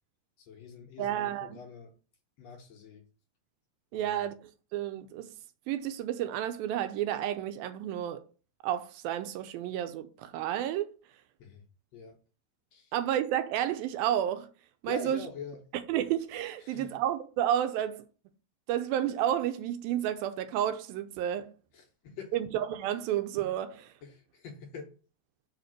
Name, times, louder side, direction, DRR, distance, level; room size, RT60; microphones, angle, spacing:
voice 1, 0.4-1.9 2.4-3.0 3.9-4.3 11.4-11.6 11.9-12.2 12.7-12.9 14.8-15.6 16.6-17.0 21.7-22.4 24.0-24.9, left 6 dB, 65° left, 1.7 m, -45 dB
voice 2, 1.0-1.6 3.9-4.3 4.7-5.3 5.7-8.2 8.6-10.9 12.9-14.5 14.8-15.2 15.9-18.0 18.7-21.5 22.3-23.9, right 11 dB, 85° right, 2.5 m, -31 dB
5.1 x 5.1 x 6.3 m
omnidirectional pair, 4.2 m